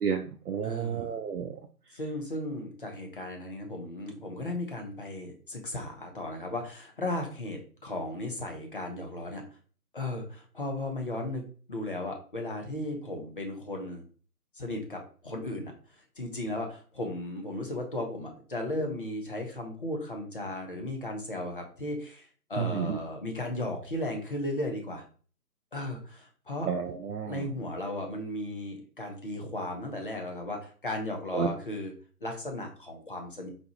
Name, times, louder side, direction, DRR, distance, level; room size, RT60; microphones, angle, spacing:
voice 1, 0.0-1.5 22.6-23.0 26.7-27.5 31.3-31.5, right 7 dB, 70° right, 4 dB, 0.6 m, -31 dB
voice 2, 0.6-1.2 1.9-9.4 9.9-11.4 11.7-14.0 14.5-25.0 25.7-26.7 27.2-31.9 32.2-33.5, left 1 dB, 35° left, 2 dB, 0.6 m, -35 dB
4.1 x 2.2 x 3.0 m, 0.41 s
figure-of-eight pair, 145°, 47 cm